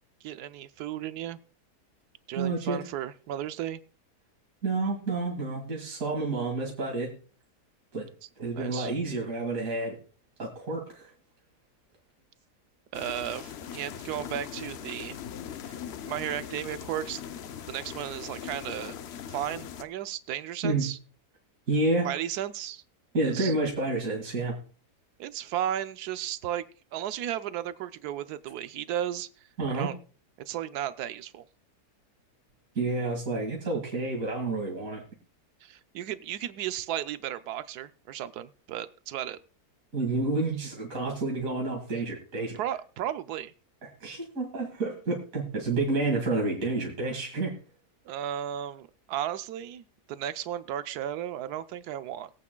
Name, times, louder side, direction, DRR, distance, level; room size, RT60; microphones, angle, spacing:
voice 1, 0.2-1.4 2.3-3.8 8.5-8.9 12.9-15.2 15.6-15.8 16.0-17.2 17.6-19.0 19.3-21.0 22.0-22.8 23.2-23.5 25.2-26.7 26.9-29.3 29.7-30.0 30.5-31.4 35.6-39.4 42.6-43.5 48.0-52.3, right 11 dB, 75° right, 13 dB, 1.2 m, -34 dB
voice 2, 2.4-2.8 4.6-7.1 7.9-8.1 8.4-10.0 10.4-11.1 20.6-20.9 21.7-22.1 23.1-24.5 29.6-29.9 32.7-35.0 39.9-42.6 44.0-47.6, right 2 dB, 55° right, -1 dB, 2.6 m, -29 dB
sound 1, 12.9-19.8, left 9 dB, 60° left, 0.7 m, -40 dB
21.5 x 8.4 x 2.2 m, 0.39 s
omnidirectional pair, 1.7 m